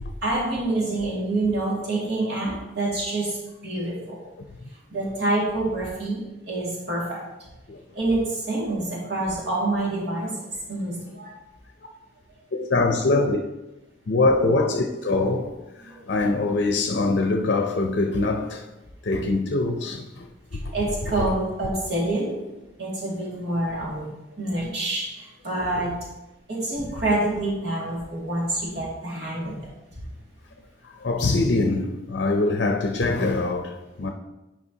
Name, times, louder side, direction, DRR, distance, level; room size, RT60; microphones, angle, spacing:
voice 1, 0.2-3.4 3.6-4.2 4.9-7.2 7.9-11.3 15.9-16.0 20.7-22.4 22.8-24.1 24.4-25.9 26.5-29.6, right 2 dB, 65° right, 2.2 m, -27 dB
voice 2, 12.5-13.4 14.1-15.6 15.8-18.7 19.0-20.3 21.2-21.3 25.6-25.9 30.8-34.1, left 2 dB, 65° left, 0.6 m, -23 dB
9.6 x 5.0 x 2.8 m
head